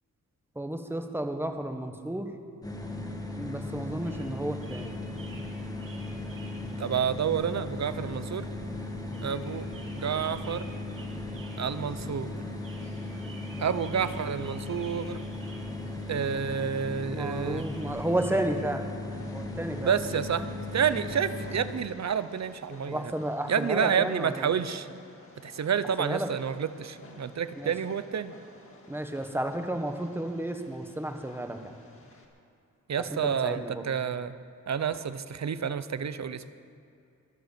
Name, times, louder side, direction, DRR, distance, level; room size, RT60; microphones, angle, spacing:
voice 1, 0.5-2.3 3.4-5.0 17.1-18.8 19.3-19.9 22.9-24.5 26.0-26.3 27.6-27.7 28.9-31.6 33.2-33.9, right 1 dB, 5° right, 5 dB, 1.1 m, -32 dB
sound 1, 2.6-21.9, left 2 dB, 10° left, 1.3 m, -37 dB
sound 2, 4.0-18.4, right 3 dB, 80° right, 2.6 m, -53 dB
voice 2, 6.8-8.5 9.2-10.7 11.6-12.3 13.6-15.2 16.1-17.7 19.8-23.1 23.5-24.9 25.4-28.3 32.9-34.3 34.7-36.4, right 7 dB, 55° right, 13 dB, 0.7 m, -29 dB
Train, 19.1-32.2, left 2 dB, 40° left, 1.8 m, -53 dB
23.5 x 7.9 x 6.8 m, 2.6 s
wide cardioid pair, 150°, 33 cm